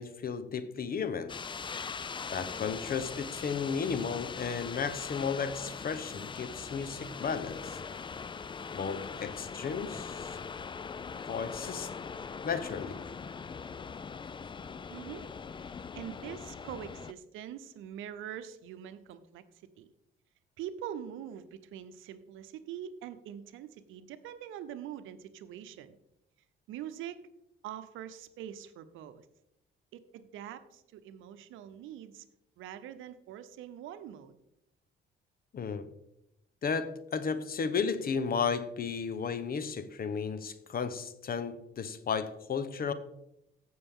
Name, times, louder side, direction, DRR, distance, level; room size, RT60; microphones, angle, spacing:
voice 1, 0.0-1.3 2.3-7.8 8.7-10.4 11.2-11.9 12.4-13.0 35.5-35.8 36.6-42.9, left 6 dB, 50° left, 1.0 m, -34 dB
sound 1, 1.3-17.1, left 5 dB, 25° left, 0.4 m, -41 dB
voice 2, 14.9-15.3 15.6-19.4 19.8-19.9 20.6-26.0 26.7-27.3 27.6-29.2 29.9-32.2 32.6-34.3, right 10 dB, 90° right, 0.8 m, -44 dB
15.5 x 6.3 x 3.7 m
cardioid pair, 90°, 20 cm